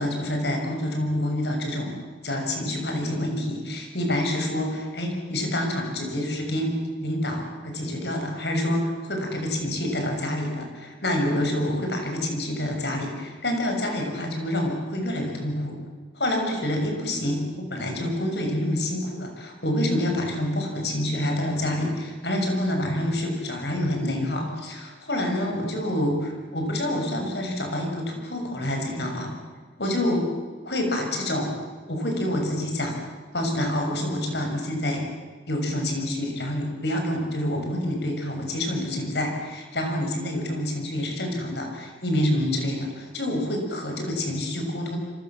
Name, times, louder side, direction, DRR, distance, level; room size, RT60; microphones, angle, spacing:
voice 1, 0.0-2.0 2.2-6.7 7.0-15.8 16.1-29.3 29.8-30.3 30.6-31.5 31.9-33.0 33.3-35.1 35.5-45.0, left 1 dB, 70° left, 3 dB, 6.6 m, -27 dB
27.0 x 25.5 x 7.5 m, 1.5 s
head